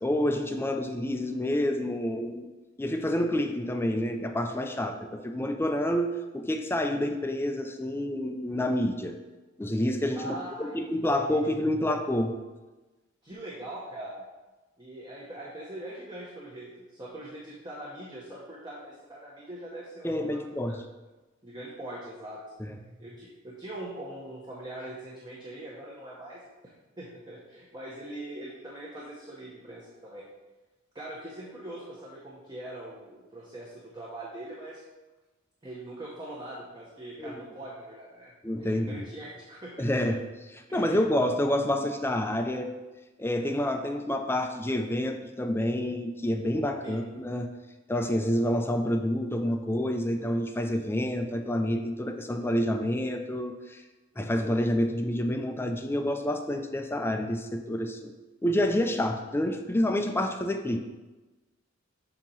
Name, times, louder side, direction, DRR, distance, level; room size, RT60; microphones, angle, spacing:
voice 1, 0.0-2.5 2.8-9.2 9.6-12.3 20.0-20.8 22.6-22.7 37.2-37.3 38.4-39.1 39.8-40.2 40.5-42.7 43.2-47.5 47.9-53.8 54.2-58.1 58.4-60.8, left 1 dB, 10° left, 5 dB, 0.4 m, -28 dB
voice 2, 10.1-10.9 11.3-11.4 13.2-14.3 14.8-20.8 21.4-22.4 23.0-26.4 27.0-30.3 30.9-34.8 35.6-38.3 38.6-40.0 40.7-41.0 46.8-47.0, right 1 dB, 20° right, -5 dB, 0.9 m, -42 dB
7.2 x 2.9 x 5.4 m, 1.2 s
head